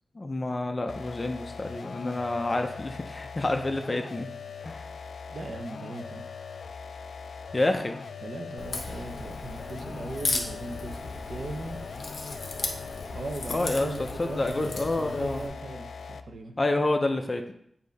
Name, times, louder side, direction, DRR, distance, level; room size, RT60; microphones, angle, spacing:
voice 1, 0.1-4.3 4.6-4.9 7.5-8.0 13.5-13.9 14.2-15.4 16.6-17.5, left 2 dB, 25° left, 5 dB, 0.5 m, -28 dB
sound 1, 0.9-16.4, left 5 dB, 75° left, 0.3 m, -41 dB
voice 2, 5.3-6.2 8.2-11.0 11.3-11.8 13.1-16.5, right 2 dB, 55° right, 5 dB, 0.7 m, -38 dB
Crack, 8.6-15.5, left 3 dB, 50° left, 0.9 m, -36 dB
8.2 x 2.7 x 5.2 m, 0.70 s
wide cardioid pair, 140°, 0 cm